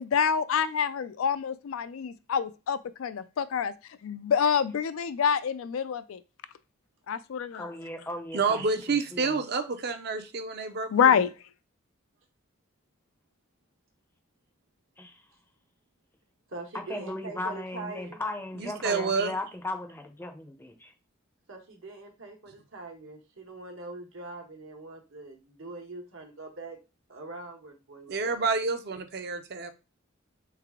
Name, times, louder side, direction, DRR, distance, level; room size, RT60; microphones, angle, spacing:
voice 1, 0.0-3.7 4.0-6.2 7.1-7.7 10.9-11.3 19.1-19.2, left 7 dB, 85° left, 0.4 m, -26 dB
voice 2, 7.5-9.4 15.0-15.2 16.9-20.9, left 2 dB, 10° left, 0.5 m, -37 dB
voice 3, 8.3-11.3 18.6-19.3 28.1-29.7, right 4 dB, 50° right, 0.6 m, -29 dB
voice 4, 16.5-18.2 21.5-26.8 27.1-28.4, right 2 dB, 75° right, 1.2 m, -43 dB
3.3 x 3.3 x 3.6 m
head